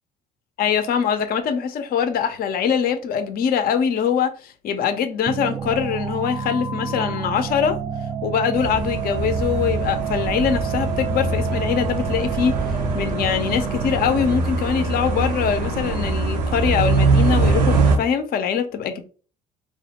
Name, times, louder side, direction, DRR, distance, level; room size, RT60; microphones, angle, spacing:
voice 1, 0.6-7.8 8.2-18.9, left 7 dB, 45° left, 0.5 m, -23 dB
sound 1, 5.3-14.5, right 8 dB, 20° right, 0.4 m, -29 dB
sound 2, 8.5-18.0, right 3 dB, 85° right, 0.5 m, -23 dB
2.5 x 2.0 x 2.9 m
figure-of-eight pair, 50°, 21 cm